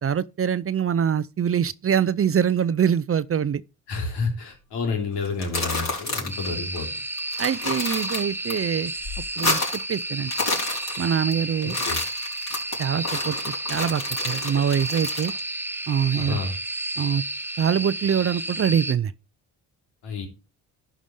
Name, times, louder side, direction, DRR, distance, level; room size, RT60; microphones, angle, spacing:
voice 1, 0.0-3.6 7.4-8.9 9.4-9.6 9.9-10.3 11.0-11.8 12.8-15.3 15.9-16.4 17.0-17.2 17.6-19.1, right 8 dB, 35° right, 0.6 m, -24 dB
voice 2, 3.9-6.9 11.6-12.0 16.1-16.6 20.0-20.3, left 4 dB, 80° left, 3.3 m, -29 dB
sound 1, 5.2-6.5 6.8-6.9 7.2-8.5 8.9-9.9 10.2-11.3 11.6-15.4, left 3 dB, 40° left, 5.2 m, -29 dB
sound 2, 6.3-18.9, right 1 dB, 5° right, 0.8 m, -31 dB
11.5 x 5.0 x 5.4 m
supercardioid pair, 70°, 40 cm